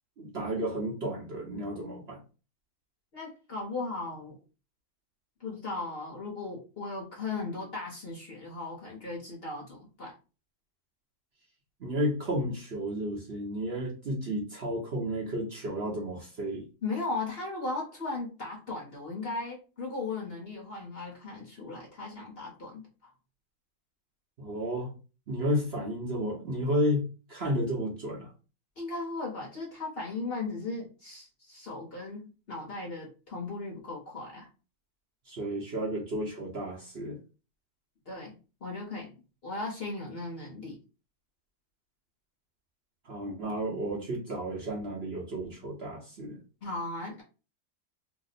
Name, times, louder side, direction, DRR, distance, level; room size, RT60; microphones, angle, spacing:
voice 1, 0.2-2.2 11.8-16.7 24.4-24.9 25.3-27.0 27.3-28.3 35.3-37.2 43.0-46.4, equal, 50° right, 0.9 m, -32 dB
voice 2, 3.1-4.4 5.4-10.1 16.8-23.1 28.8-34.5 38.1-38.4 38.6-39.1 39.4-40.8 46.6-47.2, left 3 dB, 45° left, 0.9 m, -37 dB
2.9 x 2.0 x 3.9 m
omnidirectional pair, 1.7 m